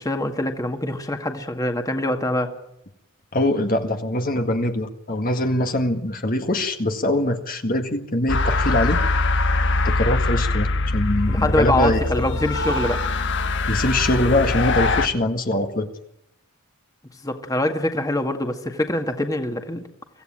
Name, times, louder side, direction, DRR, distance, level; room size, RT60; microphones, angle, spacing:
voice 1, 0.0-2.5 11.3-13.0 17.2-19.8, left 1 dB, 15° left, 5 dB, 1.9 m, -24 dB
voice 2, 3.3-9.0 9.8-12.0 13.7-15.9, left 1 dB, 40° left, 5 dB, 1.8 m, -23 dB
sound 1, 8.3-15.1, left 3 dB, 60° left, 1.3 m, -22 dB
25.0 x 16.0 x 8.8 m, 0.80 s
head